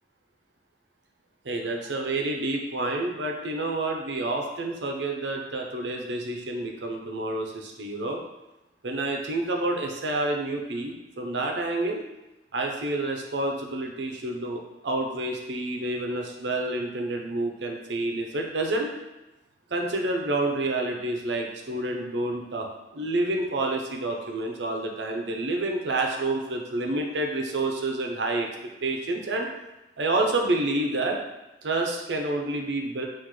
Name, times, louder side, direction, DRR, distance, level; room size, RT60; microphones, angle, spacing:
voice 1, 1.4-8.2 8.8-12.0 12.5-18.9 19.7-22.7 22.9-28.5 28.8-29.5 30.0-31.2 31.6-33.0, right 2 dB, 85° right, 1 dB, 0.7 m, -28 dB
6.0 x 2.5 x 3.1 m, 1.0 s
head